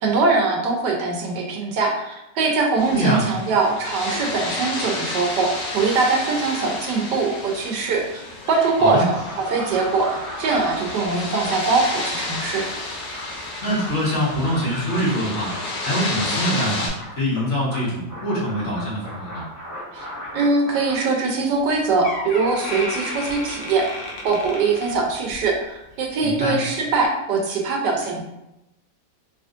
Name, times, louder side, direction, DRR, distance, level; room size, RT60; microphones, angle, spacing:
voice 1, 0.0-8.2 8.5-12.7 19.9-20.1 20.3-28.2, right 4 dB, 75° right, 1 dB, 1.3 m, -22 dB
sound 1, 2.8-16.9, left 2 dB, 85° left, 1.5 m, -31 dB
voice 2, 2.9-3.2 8.8-9.0 13.6-15.5 15.8-16.9 17.2-19.4 26.2-26.5, equal, 45° left, -7 dB, 1.4 m, -24 dB
sound 2, 9.1-21.0, equal, 15° left, 0.7 m, -37 dB
Door, 21.6-21.7 22.0-25.5 25.9-26.2 26.9-27.0, left 2 dB, 60° left, 0.8 m, -32 dB
3.4 x 3.0 x 2.5 m, 0.89 s
omnidirectional pair, 1.9 m